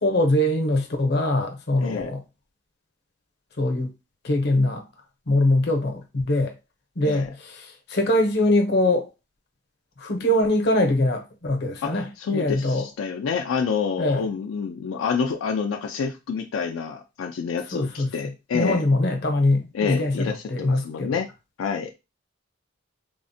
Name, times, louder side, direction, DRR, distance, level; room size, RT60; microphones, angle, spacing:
voice 1, 0.0-2.2 3.6-3.9 4.2-4.8 5.3-6.5 7.0-9.1 10.0-12.9 14.0-14.3 17.7-18.1 18.5-21.2, left 1 dB, 55° left, 0.7 m, -23 dB
voice 2, 11.8-18.8 19.7-21.3 21.6-21.9, left 6 dB, 85° left, 0.3 m, -28 dB
3.4 x 2.1 x 2.6 m
head